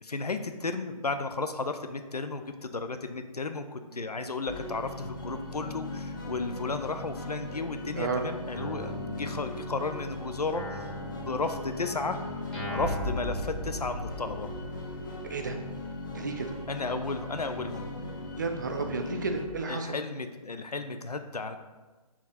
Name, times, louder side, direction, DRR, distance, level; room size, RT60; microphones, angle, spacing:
voice 1, 0.0-12.2 12.7-14.5 16.7-17.9 19.7-21.6, left 3 dB, 90° left, 8 dB, 0.4 m, -34 dB
sound 1, 4.5-19.4, left 1 dB, 30° left, 0.6 m, -38 dB
Guitar, 8.5-10.0 10.5-14.4, equal, 5° left, 0.8 m, -41 dB
voice 2, 15.2-15.6 16.1-16.5 18.4-19.9, right 4 dB, 30° right, 5 dB, 0.3 m, -32 dB
4.3 x 2.9 x 3.8 m, 1.2 s
figure-of-eight pair, 140°, 19 cm